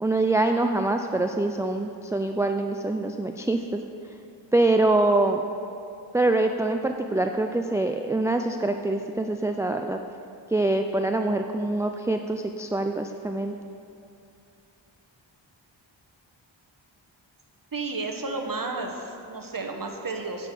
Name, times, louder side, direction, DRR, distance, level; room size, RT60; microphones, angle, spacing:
voice 1, 0.0-3.6 4.5-5.4 6.1-10.0 10.5-13.5, right 2 dB, 5° right, 5 dB, 0.3 m, -24 dB
voice 2, 17.7-20.5, right 3 dB, 45° right, 3 dB, 1.1 m, -32 dB
9.1 x 6.6 x 5.3 m, 2.6 s
wide cardioid pair, 50°, 46 cm